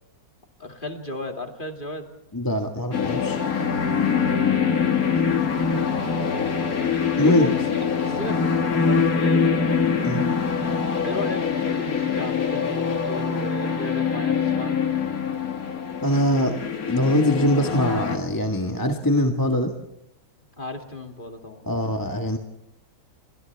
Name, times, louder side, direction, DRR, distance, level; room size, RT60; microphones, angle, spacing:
voice 1, 0.6-2.1 7.2-9.5 11.0-14.8 20.6-21.6, left 2 dB, 30° left, 4 dB, 2.6 m, -35 dB
voice 2, 2.3-3.4 7.2-7.5 10.0-10.2 16.0-16.6 16.9-19.7 21.7-22.4, left 1 dB, 15° left, 3 dB, 1.6 m, -22 dB
sound 1, 2.9-18.2, left 6 dB, 65° left, 2.4 m, -24 dB
29.5 x 25.5 x 3.5 m, 0.84 s
omnidirectional pair, 1.6 m